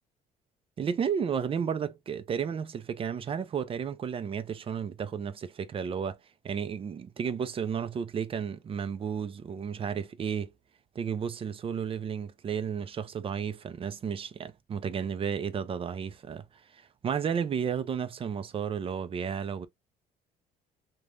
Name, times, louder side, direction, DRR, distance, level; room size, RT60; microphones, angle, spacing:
voice 1, 0.8-6.2 6.4-10.5 11.0-16.5 16.7-19.7, right 7 dB, 35° right, 0.5 m, -33 dB
3.1 x 2.2 x 2.4 m
cardioid pair, 110°, 17 cm